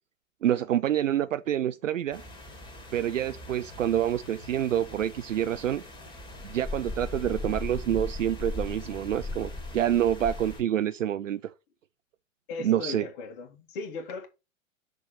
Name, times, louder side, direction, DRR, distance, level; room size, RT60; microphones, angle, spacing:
voice 1, 0.4-2.2 2.9-5.8 6.4-11.4 12.6-13.0, right 11 dB, 70° right, 0.5 m, -27 dB
sound 1, 2.1-10.6, left 2 dB, 10° left, 2.2 m, -39 dB
voice 2, 12.5-14.3, left 3 dB, 40° left, 2.0 m, -37 dB
6.3 x 3.5 x 5.6 m
figure-of-eight pair, 105°, 39 cm